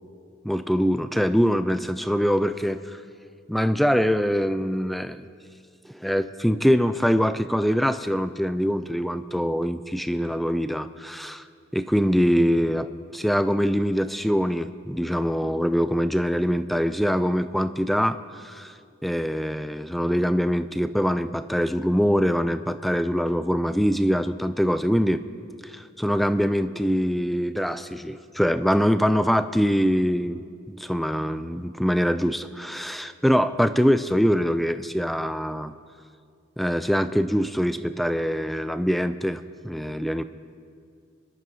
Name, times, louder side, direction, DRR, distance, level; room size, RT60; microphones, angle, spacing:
voice 1, 0.4-3.0 3.5-5.3 5.9-11.4 11.7-18.7 19.0-25.2 25.6-35.7 36.6-40.2, equal, ahead, 11 dB, 0.3 m, -23 dB
24.0 x 12.0 x 2.8 m, 2.2 s
head